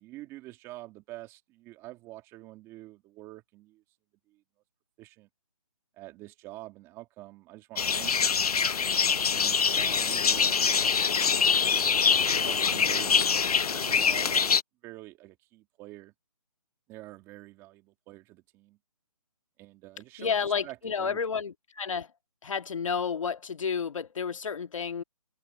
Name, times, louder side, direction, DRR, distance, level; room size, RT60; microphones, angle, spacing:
voice 1, 0.0-3.8 4.3-4.4 5.0-5.3 6.0-8.7 9.3-11.3 12.1-14.5 14.8-16.1 16.9-18.8 19.6-20.4 20.6-21.2, right 17 dB, 15° right, 2.3 m, -46 dB
sound 1, 7.8-14.6, left 6 dB, 80° left, 0.8 m, -24 dB
voice 2, 20.2-22.1 22.4-25.0, left 6 dB, 60° left, 1.8 m, -31 dB
hypercardioid pair, 165°, 19 cm